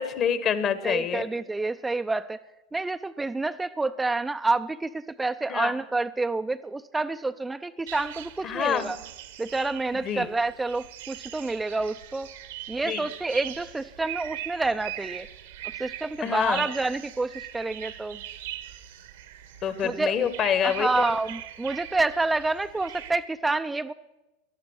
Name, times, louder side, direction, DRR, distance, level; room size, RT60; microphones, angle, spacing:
voice 1, 0.0-1.2 5.5-5.7 8.4-8.9 10.0-10.3 12.8-13.0 16.2-16.6 19.6-21.1, left 8 dB, 40° left, 13 dB, 1.4 m, -26 dB
voice 2, 0.8-2.4 2.7-9.0 9.4-12.3 12.7-15.3 15.8-18.2 19.8-20.3 20.6-23.9, right 3 dB, 10° right, 9 dB, 0.5 m, -28 dB
sound 1, 7.9-23.1, right 12 dB, 70° right, 1.3 m, -41 dB
18.0 x 12.0 x 6.4 m, 1.0 s
hypercardioid pair, 90°, 0 cm